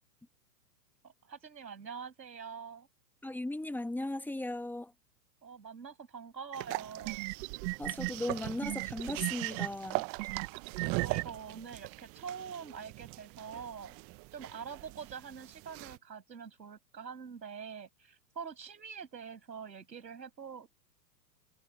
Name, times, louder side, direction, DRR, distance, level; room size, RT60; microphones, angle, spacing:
voice 1, 1.0-2.9 5.4-7.3 10.8-14.0 14.3-20.7, right 6 dB, 90° right, 7.6 m, -45 dB
voice 2, 3.2-4.9 7.8-10.1, left 1 dB, 5° left, 1.7 m, -37 dB
sound 1, 6.5-16.0, right 25 dB, 30° right, 0.7 m, -41 dB
sound 2, 6.5-6.6 7.0-8.1 8.6-9.7 10.2-11.2, right 25 dB, 45° right, 1.3 m, -36 dB
hypercardioid pair, 115°, 49 cm